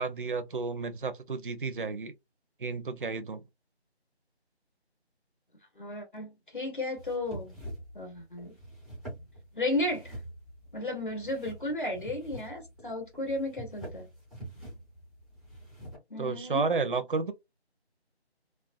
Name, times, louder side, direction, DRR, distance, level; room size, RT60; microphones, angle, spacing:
voice 1, 0.0-2.1 2.6-3.4 16.2-17.3, right 4 dB, 55° right, 0.4 m, -31 dB
voice 2, 5.8-7.6 7.9-8.5 9.5-10.2 10.7-14.1 16.1-16.7, left 1 dB, 50° left, 0.9 m, -34 dB
sound 1, 7.0-16.0, right 1 dB, ahead, 0.5 m, -45 dB
2.4 x 2.1 x 2.4 m
figure-of-eight pair, 170°, 33 cm